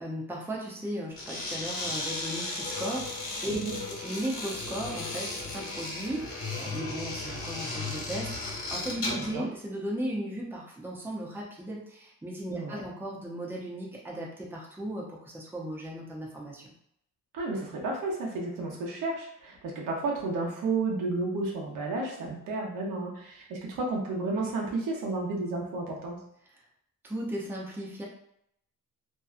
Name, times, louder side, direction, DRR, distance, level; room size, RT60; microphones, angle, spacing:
voice 1, 0.0-3.6 3.9-16.7 27.0-28.0, right 1 dB, 5° right, -3 dB, 0.5 m, -36 dB
sound 1, 1.1-9.4, left 3 dB, 45° left, 1.1 m, -35 dB
voice 2, 3.5-3.8 9.2-9.5 12.5-12.8 17.3-26.2, right 3 dB, 85° right, -2 dB, 0.8 m, -32 dB
2.7 x 2.2 x 2.4 m, 0.73 s
cardioid pair, 130°, 32 cm